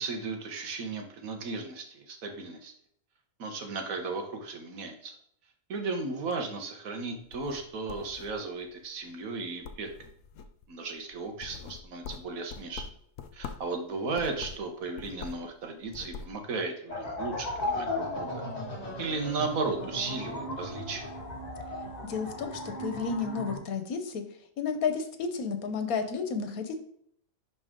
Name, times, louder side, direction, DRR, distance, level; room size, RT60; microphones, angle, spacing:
voice 1, 0.0-2.7 3.4-5.1 5.7-9.9 10.7-12.8 13.3-18.4 19.0-21.1, right 3 dB, 75° right, 4 dB, 1.5 m, -35 dB
sound 1, 7.2-8.7 9.1-9.4 9.6-10.7 11.1-13.7 14.1-15.5 15.8-16.4, left 6 dB, 70° left, 0.9 m, -44 dB
sound 2, 16.9-23.6, left 1 dB, 30° left, 1.9 m, -36 dB
voice 2, 22.0-24.2 24.6-26.8, left 5 dB, 85° left, 7 dB, 1.4 m, -32 dB
11.0 x 4.0 x 3.7 m, 0.67 s
omnidirectional pair, 1.5 m